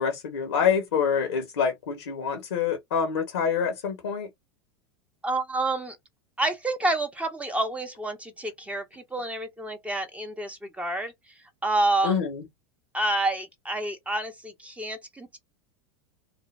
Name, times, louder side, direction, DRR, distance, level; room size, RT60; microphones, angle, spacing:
voice 1, 0.0-4.3 12.0-12.4, left 6 dB, 80° left, 1.0 m, -26 dB
voice 2, 5.2-6.0 6.4-11.3 11.6-12.2 12.9-15.4, right 2 dB, 10° right, 0.6 m, -29 dB
2.5 x 2.1 x 3.1 m
hypercardioid pair, 95°, 13 cm